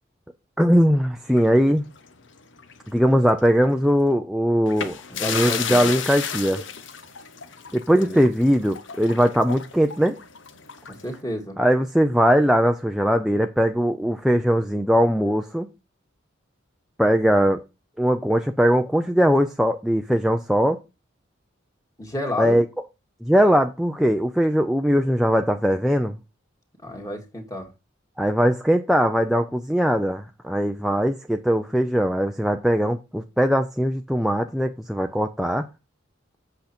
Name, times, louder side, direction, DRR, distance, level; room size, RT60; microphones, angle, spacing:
voice 1, 0.6-1.9 2.9-5.0 5.2-6.6 7.7-10.2 11.6-15.7 17.0-17.6 18.0-20.8 22.4-22.6 23.2-26.2 28.2-35.6, equal, ahead, 0.6 m, -20 dB
sound 1, 1.3-2.9 3.2-3.4 4.7-11.2, left 7 dB, 65° left, 1.0 m, -33 dB
voice 2, 5.1-5.9 7.9-8.3 10.9-11.6 22.0-22.6 26.8-27.7, left 1 dB, 15° left, 2.1 m, -31 dB
8.1 x 6.6 x 4.3 m
head